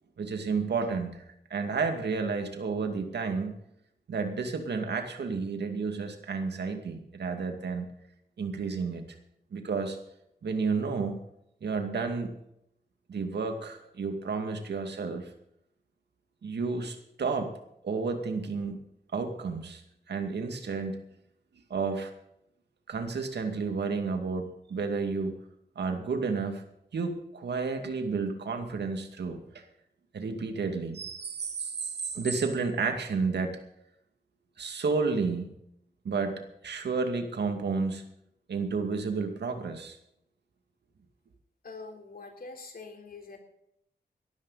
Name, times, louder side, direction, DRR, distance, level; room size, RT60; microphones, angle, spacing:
voice 1, 0.2-1.2 1.5-3.6 4.1-7.9 8.4-9.0 9.5-10.0 10.4-11.2 11.6-12.4 13.1-15.3 16.4-17.6 17.8-18.8 19.1-19.8 20.1-21.0 21.7-22.1 22.9-25.3 25.8-26.6 26.9-29.6 30.1-33.6 34.6-35.6 36.0-38.0 38.5-40.0, right 4 dB, 85° right, 6 dB, 2.3 m, -31 dB
voice 2, 41.6-43.4, left 3 dB, 60° left, 3 dB, 3.9 m, -44 dB
18.5 x 13.0 x 4.1 m, 0.77 s
wide cardioid pair, 90°, 17 cm